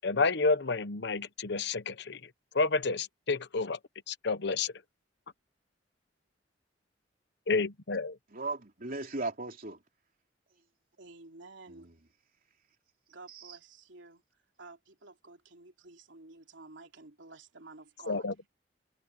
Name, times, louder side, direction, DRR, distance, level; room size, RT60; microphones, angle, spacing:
voice 1, 0.0-2.2 2.5-3.8 4.1-4.7 7.5-8.2 18.1-18.5, left 3 dB, 65° left, 1.0 m, -30 dB
voice 2, 8.3-9.8 11.7-11.9 13.3-13.6, right 2 dB, 50° right, 3.2 m, -37 dB
voice 3, 11.0-11.9 13.1-14.2 14.6-18.3, right 3 dB, 80° right, 3.2 m, -51 dB
head